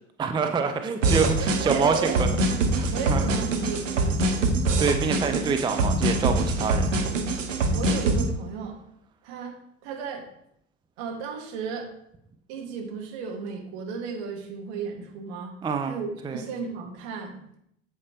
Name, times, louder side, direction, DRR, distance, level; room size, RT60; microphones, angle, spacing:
voice 1, 0.2-2.3 3.1-3.2 4.8-6.9 15.6-15.9 16.2-16.4, right 5 dB, 10° right, 6 dB, 0.5 m, -26 dB
sound 1, 1.0-8.3, right 2 dB, 75° right, 1.0 m, -24 dB
voice 2, 1.2-2.6 2.9-4.2 7.7-8.8 9.2-9.6 9.8-10.3 11.0-11.9 12.5-15.6 15.8-17.4, right 5 dB, 55° right, 1 dB, 2.1 m, -34 dB
8.5 x 7.8 x 3.0 m, 0.73 s
figure-of-eight pair, 65°, 39 cm